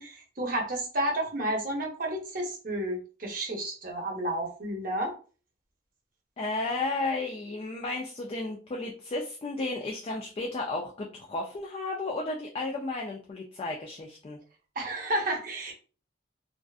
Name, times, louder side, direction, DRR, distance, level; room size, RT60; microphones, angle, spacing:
voice 1, 0.0-5.1 14.8-15.7, right 1 dB, 50° right, 1 dB, 0.7 m, -31 dB
voice 2, 6.4-14.4, left 2 dB, 30° left, 0 dB, 0.3 m, -33 dB
2.5 x 2.4 x 2.3 m, 0.37 s
head